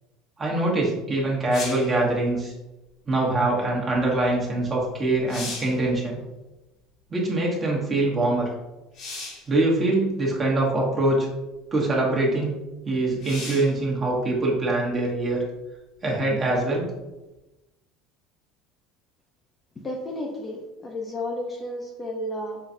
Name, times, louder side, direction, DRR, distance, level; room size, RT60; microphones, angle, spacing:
voice 1, 0.4-2.5 3.1-6.2 7.1-8.5 9.5-11.3 11.7-12.6 12.8-15.4 16.0-16.9, right 2 dB, 25° right, -3 dB, 1.1 m, -23 dB
sound 1, 1.5-2.0 4.6-4.7 5.1-5.8 8.9-9.5 10.5-10.6 13.2-13.8 17.4-17.5, left 3 dB, 55° left, 1.3 m, -36 dB
voice 2, 19.8-22.6, left 1 dB, 20° left, 0 dB, 0.5 m, -32 dB
5.6 x 2.3 x 2.6 m, 1.0 s
cardioid pair, 130°, 0 cm